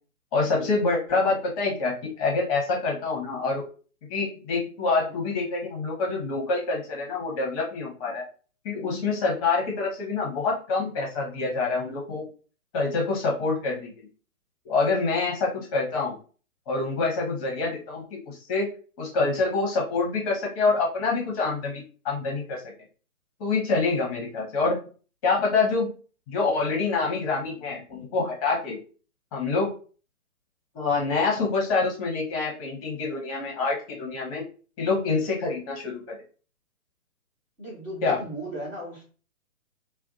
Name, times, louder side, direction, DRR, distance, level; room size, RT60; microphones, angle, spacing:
voice 1, 0.3-3.6 4.1-8.2 8.6-12.2 12.7-14.1 14.6-16.1 16.7-18.7 19.0-22.6 23.4-24.8 25.2-25.9 26.3-28.8 29.3-29.7 30.7-34.4 34.8-36.2 38.0-38.2, left 3 dB, 25° left, -1 dB, 0.9 m, -26 dB
voice 2, 37.6-39.0, right 1 dB, 10° right, -12 dB, 0.5 m, -36 dB
2.5 x 2.3 x 3.7 m, 0.38 s
figure-of-eight pair, 125°, 43 cm